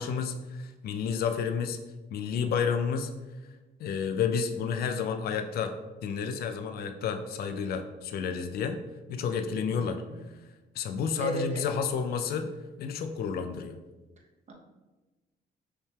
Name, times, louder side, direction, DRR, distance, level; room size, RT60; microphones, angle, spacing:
voice 1, 0.0-1.8 2.1-3.1 3.8-5.7 6.0-8.8 9.1-10.0 10.8-12.5 12.8-13.8, left 6 dB, 65° left, 7 dB, 0.4 m, -30 dB
voice 2, 9.7-10.2 11.2-11.7 14.5-14.6, equal, 40° right, 1 dB, 0.9 m, -35 dB
5.6 x 2.2 x 3.3 m, 1.2 s
cardioid pair, 75°, 17 cm